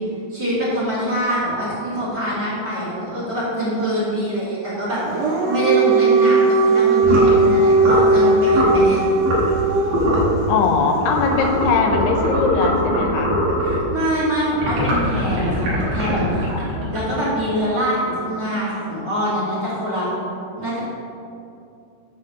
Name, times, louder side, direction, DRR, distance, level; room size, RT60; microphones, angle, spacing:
voice 1, 0.3-9.1 13.6-16.5 16.9-20.1 20.6-20.8, equal, 35° right, -8 dB, 2.6 m, -24 dB
Dog, 5.0-10.2, right 3 dB, 85° right, 1.5 m, -17 dB
sound 1, 7.0-7.4 7.8-8.1 8.5-8.8 9.2-9.6 9.9-10.3 11.0-13.9 14.5-17.4, equal, 65° right, 3.5 m, -22 dB
voice 2, 10.5-13.4, left 4 dB, 85° left, 3 dB, 2.9 m, -20 dB
11.5 x 3.9 x 6.6 m, 2.6 s
omnidirectional pair, 4.6 m